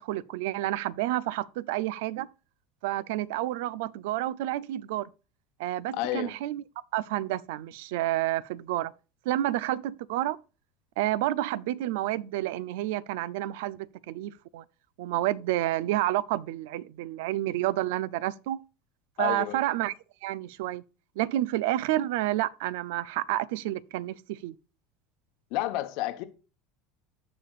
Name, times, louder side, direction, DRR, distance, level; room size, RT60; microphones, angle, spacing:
voice 1, 0.0-2.3 2.8-5.1 5.6-6.6 6.9-8.9 9.2-10.4 11.0-14.6 15.0-18.6 19.2-19.9 20.2-20.8 21.2-24.6, right 15 dB, 80° right, 0.4 m, -29 dB
voice 2, 5.9-6.4 19.2-19.6 25.5-26.2, left 15 dB, 65° left, 1.0 m, -30 dB
15.0 x 5.1 x 2.4 m
supercardioid pair, 125°, 0 cm